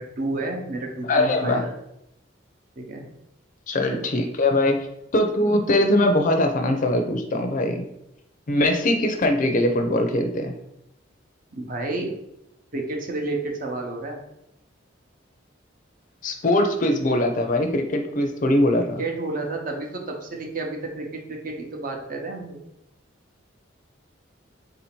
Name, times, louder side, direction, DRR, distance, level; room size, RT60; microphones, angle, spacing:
voice 1, 0.0-1.7 2.8-3.1 3.9-4.1 11.5-12.1 12.7-14.2 19.0-22.6, right 2 dB, 45° right, 1 dB, 0.7 m, -30 dB
voice 2, 1.1-1.6 3.7-4.8 5.1-7.9 8.5-10.5 16.2-19.0, left 1 dB, 40° left, 5 dB, 0.5 m, -21 dB
3.9 x 2.7 x 4.4 m, 0.81 s
head